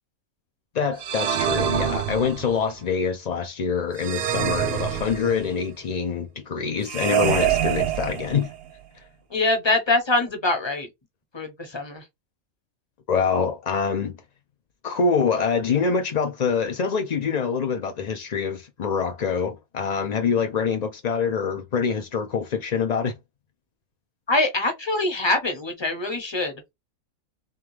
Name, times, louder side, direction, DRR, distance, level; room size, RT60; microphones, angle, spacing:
voice 1, 0.7-8.5 13.1-14.1 14.8-23.1, left 5 dB, 65° left, 0.4 m, -25 dB
sound 1, 1.0-2.7 4.0-5.6 6.9-8.7, right 10 dB, 60° right, 0.7 m, -26 dB
voice 2, 9.3-10.9 11.3-12.0 24.3-26.5, left 2 dB, 20° left, 1.0 m, -24 dB
3.7 x 3.3 x 3.2 m
omnidirectional pair, 1.4 m